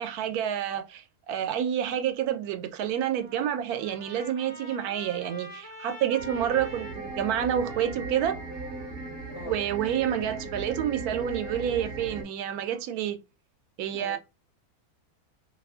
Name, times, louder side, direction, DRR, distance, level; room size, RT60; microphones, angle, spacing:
voice 1, 0.0-8.4 9.4-13.2 13.8-14.2, right 10 dB, 90° right, 1.1 m, -29 dB
Trumpet, 3.0-10.4, equal, 25° left, 0.8 m, -47 dB
sound 1, 6.2-12.2, right 3 dB, 50° right, 0.8 m, -37 dB
voice 2, 9.3-9.6 13.9-14.2, left 5 dB, 60° left, 1.1 m, -41 dB
2.8 x 2.3 x 2.4 m
omnidirectional pair, 1.5 m